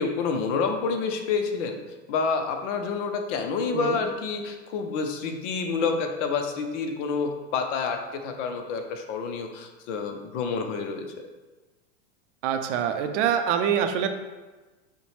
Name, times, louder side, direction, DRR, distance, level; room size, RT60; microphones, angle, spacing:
voice 1, 0.0-1.8 2.1-11.1, left 5 dB, 65° left, 5 dB, 0.7 m, -28 dB
voice 2, 12.4-14.1, right 8 dB, 60° right, 7 dB, 0.6 m, -25 dB
5.1 x 2.2 x 3.2 m, 1.2 s
hypercardioid pair, 115°, 40 cm